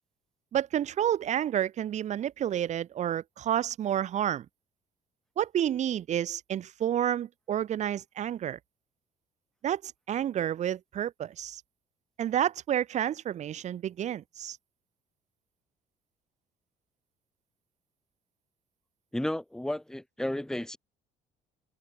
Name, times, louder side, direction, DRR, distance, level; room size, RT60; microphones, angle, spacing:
voice 1, 0.5-4.5 5.4-8.6 9.6-11.6 12.2-14.6, right 10 dB, 45° right, 0.5 m, -30 dB
voice 2, 19.1-20.8, left 1 dB, 5° left, 1.1 m, -32 dB
open air
cardioid pair, 110°, 17 cm